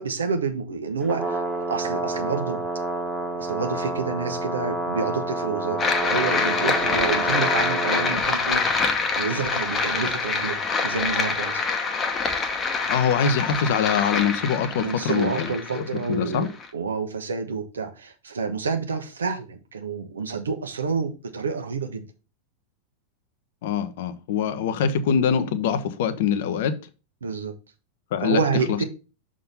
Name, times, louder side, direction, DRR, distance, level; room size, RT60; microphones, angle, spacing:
voice 1, 0.0-1.4 1.7-2.6 3.4-8.6 9.1-11.6 14.8-16.5 16.7-22.1 27.2-27.5 28.2-28.8, right 4 dB, 70° right, 1.1 m, -28 dB
Brass instrument, 1.0-8.2, right 2 dB, 15° right, 1.4 m, -29 dB
sound 1, 5.8-16.7, left 4 dB, 20° left, 1.0 m, -25 dB
voice 2, 12.9-15.8 16.1-16.5 23.6-26.8 28.1-28.4 28.7-28.8, left 7 dB, 55° left, 0.8 m, -24 dB
6.5 x 3.8 x 5.5 m
figure-of-eight pair, 90°, 0 cm